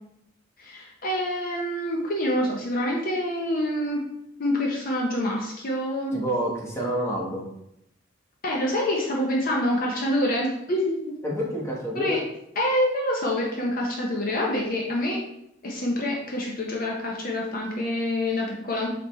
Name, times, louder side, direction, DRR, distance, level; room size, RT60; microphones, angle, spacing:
voice 1, 0.6-4.1 4.4-6.1 8.4-11.2 11.9-12.2 12.6-15.2 15.6-18.9, left 1 dB, 50° left, -2 dB, 0.7 m, -26 dB
voice 2, 6.1-7.4 11.2-12.3, right 1 dB, 15° left, -3 dB, 1.0 m, -28 dB
4.9 x 3.3 x 3.0 m, 0.79 s
head